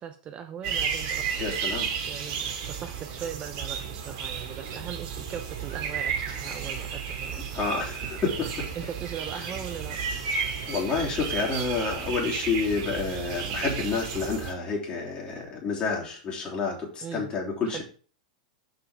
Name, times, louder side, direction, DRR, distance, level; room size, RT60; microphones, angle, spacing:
voice 1, 0.0-1.4 2.1-7.4 8.7-10.0 17.0-17.3 17.7-17.8, right 8 dB, 30° right, 9 dB, 0.8 m, -39 dB
sound 1, 0.6-14.5, right 6 dB, 50° right, 2.5 m, -33 dB
voice 2, 1.4-1.9 7.5-8.7 10.7-17.8, left 4 dB, 25° left, -2 dB, 3.2 m, -29 dB
6.8 x 5.5 x 5.0 m, 0.40 s
hypercardioid pair, 125°, 4 cm